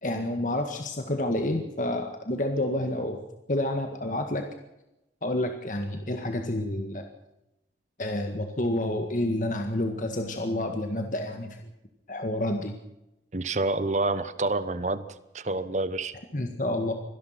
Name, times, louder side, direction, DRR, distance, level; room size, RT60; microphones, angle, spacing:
voice 1, 0.0-3.2 3.5-4.4 5.2-7.0 8.0-11.6 12.1-12.8 16.3-16.9, left 1 dB, 45° left, 5 dB, 1.9 m, -29 dB
voice 2, 13.3-15.1 15.3-16.1, right 2 dB, 40° right, 14 dB, 1.0 m, -28 dB
24.5 x 18.0 x 6.0 m, 0.91 s
head